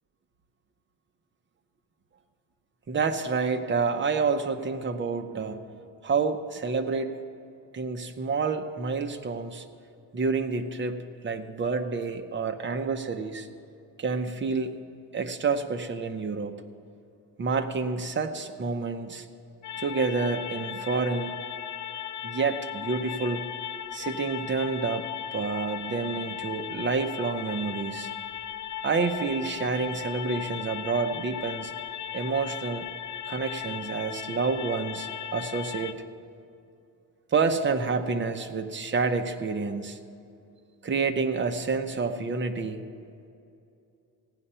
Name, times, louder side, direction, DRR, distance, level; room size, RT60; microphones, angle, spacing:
voice 1, 2.9-5.6 6.0-7.1 7.7-9.6 10.1-11.0 11.2-13.5 14.0-14.7 15.1-16.6 17.4-19.3 19.8-21.3 22.2-23.4 23.9-28.1 28.8-31.7 32.1-32.9 33.3-36.0 37.3-40.0 40.8-42.8, right 4 dB, 30° right, 6 dB, 0.8 m, -28 dB
sound 1, 19.6-35.9, left 10 dB, 45° left, 0.5 m, -37 dB
15.5 x 9.8 x 5.6 m, 2.6 s
cardioid pair, 145°, 41 cm